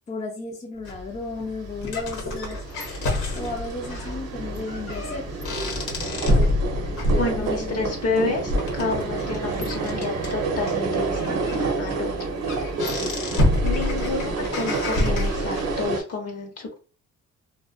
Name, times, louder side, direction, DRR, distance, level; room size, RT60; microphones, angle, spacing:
voice 1, 0.1-2.6 3.3-5.4 7.2-8.6, left 3 dB, 25° left, 0 dB, 0.6 m, -34 dB
sound 1, 0.8-15.8, left 1 dB, 90° left, 1.0 m, -28 dB
sound 2, 1.6-16.0, right 4 dB, 55° right, 0.7 m, -30 dB
voice 2, 7.2-12.3 13.6-16.8, left 3 dB, 50° left, 1 dB, 0.9 m, -29 dB
2.5 x 2.2 x 2.4 m, 0.36 s
cardioid pair, 90°, 30 cm